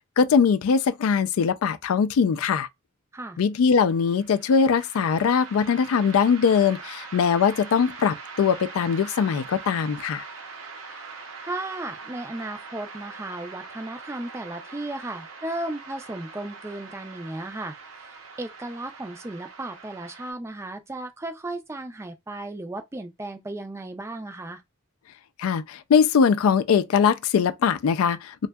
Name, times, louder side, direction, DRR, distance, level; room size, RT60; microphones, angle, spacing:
voice 1, 0.2-2.7 3.4-10.2 25.4-28.5, left 6 dB, 90° left, 0.3 m, -21 dB
sound 1, 3.9-20.3, right 4 dB, 75° right, 0.6 m, -42 dB
voice 2, 11.4-24.6, right 2 dB, 15° right, 0.3 m, -35 dB
2.6 x 2.2 x 2.2 m
head